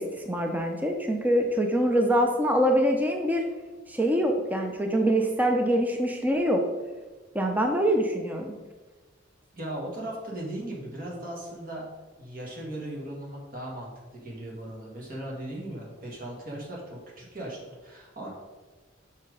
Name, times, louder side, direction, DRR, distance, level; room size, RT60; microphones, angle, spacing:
voice 1, 0.0-3.4 3.9-6.6 7.3-8.5, equal, 10° right, 3 dB, 0.5 m, -24 dB
voice 2, 9.5-11.9 12.2-18.3, right 1 dB, 45° right, -3 dB, 1.8 m, -38 dB
5.8 x 5.5 x 5.0 m, 1.2 s
head